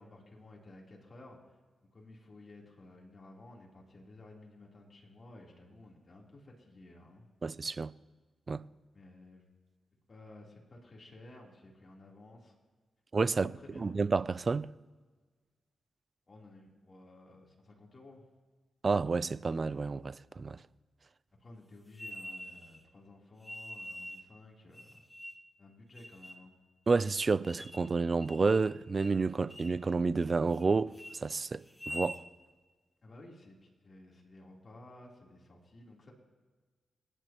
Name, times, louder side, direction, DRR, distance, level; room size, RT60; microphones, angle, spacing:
voice 1, 0.0-1.6 1.9-7.2 8.9-9.4 10.1-12.5 13.3-14.0 16.3-18.2 21.4-24.9 25.6-26.5 33.0-36.1, left 2 dB, 45° left, 3.5 m, -54 dB
voice 2, 7.4-7.9 8.5-8.6 13.1-13.5 13.8-14.7 18.8-20.6 26.9-32.2, right 4 dB, 45° right, 0.5 m, -30 dB
sound 1, 21.9-22.8 23.4-24.3 24.7-25.5 26.0-26.4 26.9-27.0 27.4-27.9 28.2-28.7 29.0-29.2 29.5-29.8 30.2-30.6 30.9-31.2 31.7-32.2, equal, 10° left, 1.4 m, -45 dB
28.0 x 10.0 x 3.0 m
cardioid pair, 65°, 0 cm